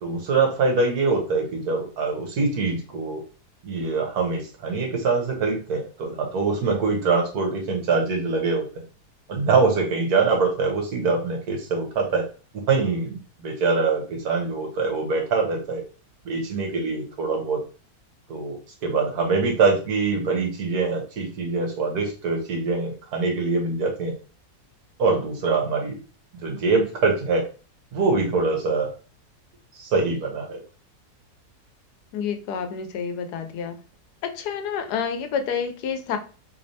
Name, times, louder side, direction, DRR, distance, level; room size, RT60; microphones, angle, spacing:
voice 1, 0.0-3.2 3.6-8.6 9.3-12.2 12.7-15.8 16.2-17.6 18.3-18.6 18.8-24.1 25.0-25.9 26.4-27.4 27.9-28.9 29.7-30.6, right 4 dB, 70° right, 1 dB, 1.5 m, -24 dB
voice 2, 32.1-33.8 34.2-36.2, left 7 dB, 85° left, 7 dB, 1.2 m, -29 dB
3.3 x 3.2 x 2.6 m, 0.35 s
omnidirectional pair, 1.7 m